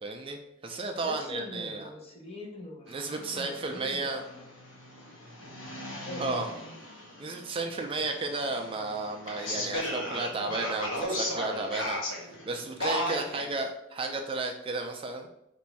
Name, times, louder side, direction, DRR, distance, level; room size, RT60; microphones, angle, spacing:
voice 1, 0.0-1.8 2.9-4.2 6.2-6.5 7.2-15.3, right 3 dB, 30° right, 3 dB, 0.3 m, -33 dB
voice 2, 0.9-4.4 6.0-6.5 13.1-13.4, left 1 dB, 30° left, -1 dB, 0.9 m, -43 dB
sound 1, 2.9-13.6, left 1 dB, 80° left, 1.0 m, -36 dB
3.0 x 2.6 x 4.4 m, 0.83 s
head